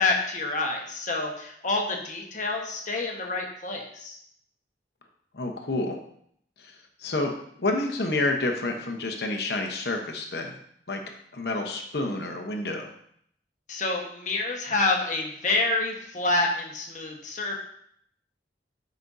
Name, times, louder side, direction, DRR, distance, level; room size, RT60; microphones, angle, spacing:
voice 1, 0.0-4.2 13.7-17.6, left 2 dB, 45° left, 0 dB, 1.3 m, -27 dB
voice 2, 5.3-6.0 6.6-6.7 7.0-7.3 7.6-10.5 10.9-11.0 11.3-12.8, left 2 dB, 65° left, 3 dB, 1.0 m, -28 dB
12.0 x 5.2 x 2.7 m, 0.68 s
head